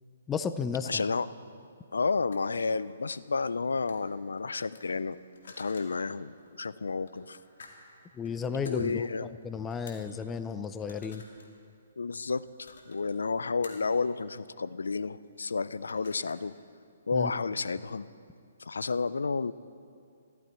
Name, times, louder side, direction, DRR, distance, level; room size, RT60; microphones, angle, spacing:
voice 1, 0.3-1.0 8.2-11.2 17.1-17.3, left 6 dB, 15° left, 11 dB, 0.4 m, -33 dB
voice 2, 0.9-1.3 1.9-5.2 5.5-7.4 8.5-9.3 12.0-16.5 17.1-18.1 18.6-19.5, left 4 dB, 85° left, 17 dB, 0.4 m, -31 dB
sound 1, 2.3-2.4 2.8-3.5 3.8-4.1 4.3-5.9 6.4-6.6 7.1-7.7 8.0-8.3 8.6-8.8 9.4-9.5 9.7-10.1 10.7-11.5 12.4-13.1 13.6-13.9 15.2-15.4 15.7-16.5, left 4 dB, 70° left, 2.1 m, -52 dB
14.5 x 13.5 x 4.4 m, 2.3 s
hypercardioid pair, 150°, 0 cm